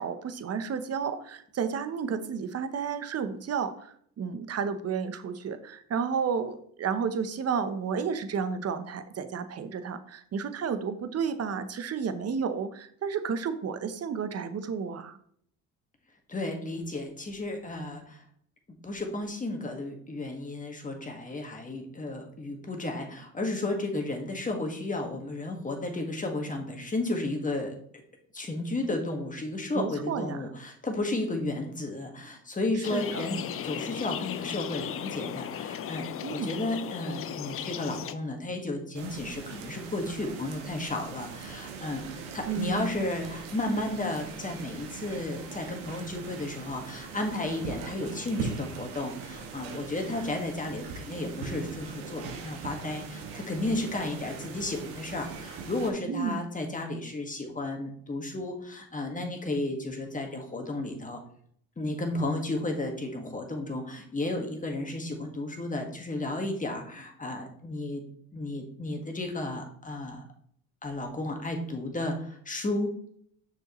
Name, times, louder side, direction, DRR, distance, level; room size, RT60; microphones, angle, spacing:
voice 1, 0.0-15.2 29.7-30.4 32.8-33.3 36.2-36.6 42.4-43.1 56.1-56.4, right 6 dB, 40° right, 10 dB, 0.8 m, -32 dB
voice 2, 16.3-18.2 18.8-27.7 28.3-36.1 36.3-61.2 61.8-68.0 68.3-70.2 70.8-72.9, left 2 dB, 20° left, 3 dB, 1.6 m, -33 dB
sound 1, 32.8-38.1, left 9 dB, 35° left, 0.4 m, -36 dB
sound 2, 38.9-55.9, right 5 dB, 90° right, 1.1 m, -41 dB
6.2 x 5.0 x 3.0 m, 0.63 s
supercardioid pair, 75°, 38 cm